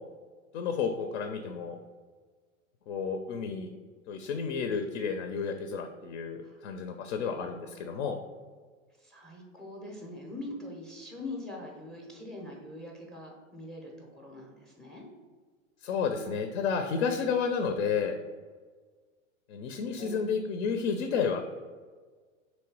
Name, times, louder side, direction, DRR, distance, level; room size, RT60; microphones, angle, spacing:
voice 1, 0.5-1.8 2.9-3.7 4.1-8.2 15.8-18.2 19.5-21.4, left 6 dB, 65° left, 6 dB, 0.6 m, -31 dB
voice 2, 7.2-8.0 9.0-15.1 17.0-17.4 20.0-20.1, left 2 dB, ahead, 0 dB, 0.5 m, -43 dB
3.2 x 3.1 x 4.5 m, 1.5 s
hypercardioid pair, 120°, 41 cm